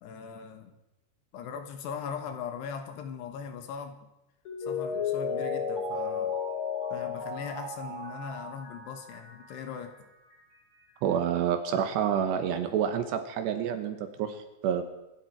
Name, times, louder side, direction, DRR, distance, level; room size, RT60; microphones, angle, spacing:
voice 1, 0.0-0.8 1.3-4.0 4.6-6.4 6.9-10.1, left 7 dB, 70° left, 6 dB, 3.1 m, -40 dB
Mallet percussion, 4.4-10.0 10.3-10.4, left 5 dB, 30° left, 4.2 m, -34 dB
voice 2, 11.0-14.8, right 8 dB, 75° right, 8 dB, 3.0 m, -28 dB
25.0 x 11.5 x 4.6 m, 0.95 s
omnidirectional pair, 5.4 m